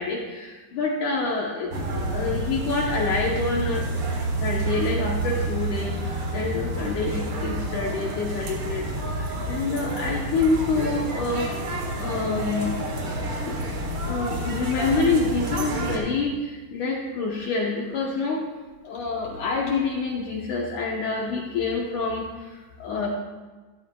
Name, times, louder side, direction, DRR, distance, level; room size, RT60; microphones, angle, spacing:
voice 1, 0.0-3.8 4.4-5.9 6.3-8.9 9.1-11.5 12.0-12.8 13.4-13.5 14.1-16.3 16.7-18.5 18.8-22.2 22.8-23.1, left 3 dB, 80° left, -1 dB, 1.7 m, -27 dB
sound 1, 1.7-16.0, right 1 dB, 65° right, 1.3 m, -29 dB
14.5 x 12.5 x 2.3 m, 1.3 s
omnidirectional pair, 4.9 m